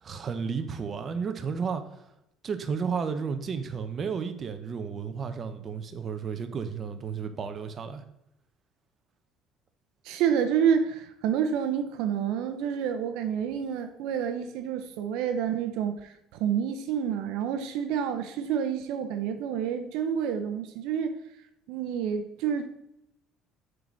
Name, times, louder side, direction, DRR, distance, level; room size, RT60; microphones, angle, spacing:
voice 1, 0.0-1.8 2.4-8.0, right 6 dB, 40° right, 8 dB, 0.8 m, -32 dB
voice 2, 10.0-21.1 21.7-22.7, right 8 dB, 80° right, 8 dB, 0.7 m, -28 dB
7.7 x 4.1 x 6.1 m, 0.81 s
cardioid pair, 110°, 0 cm